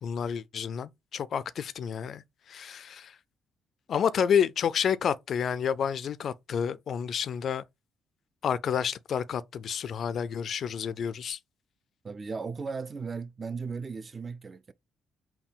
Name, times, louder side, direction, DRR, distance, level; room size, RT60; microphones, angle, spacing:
voice 1, 0.0-2.2 2.5-3.1 3.9-7.6 8.4-11.4, left 7 dB, 60° left, 0.3 m, -29 dB
voice 2, 12.0-14.7, right 5 dB, 35° right, 0.3 m, -36 dB
3.6 x 2.2 x 3.9 m
cardioid pair, 90°, 0 cm